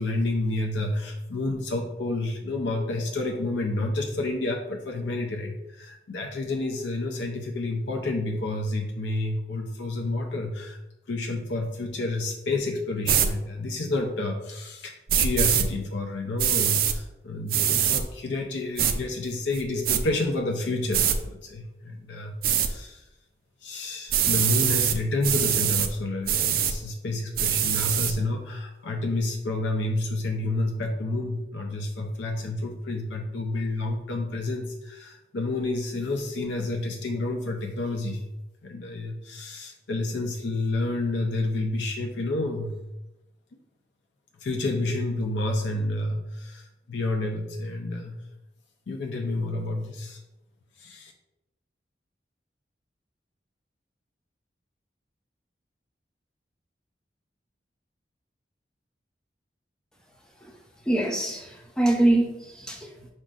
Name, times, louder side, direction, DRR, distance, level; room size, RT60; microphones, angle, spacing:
voice 1, 0.0-10.8 11.1-23.1 23.6-38.2 38.6-42.8 44.4-48.2 48.9-50.2 50.8-51.1, left 2 dB, 85° left, 0.5 m, -29 dB
sound 1, 13.0-13.3 15.1-15.7 16.4-17.0 17.5-18.0 18.8-18.9 19.5-20.0 20.9-21.2 22.4-22.7 24.1-25.0 25.2-25.9 26.3-26.7 27.4-28.1, right 9 dB, 55° right, 0.3 m, -23 dB
voice 2, 60.9-63.1, right 1 dB, 5° left, 0.5 m, -24 dB
5.2 x 3.8 x 2.4 m
head